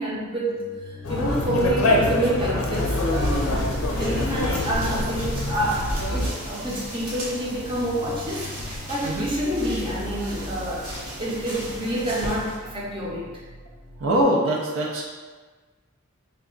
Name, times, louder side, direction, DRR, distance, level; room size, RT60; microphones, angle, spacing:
voice 1, 0.0-8.5 8.9-13.3, right 1 dB, 25° right, -5 dB, 0.7 m, -28 dB
sound 1, 0.5-14.2, left 1 dB, 10° left, 0.5 m, -37 dB
Conversation, 1.0-6.3, left 1 dB, 75° left, 0.5 m, -25 dB
sound 2, 2.7-12.6, right 1 dB, 80° right, 1.1 m, -36 dB
voice 2, 14.0-15.1, right 1 dB, 65° right, -2 dB, 0.5 m, -23 dB
3.3 x 2.3 x 3.7 m, 1.4 s
head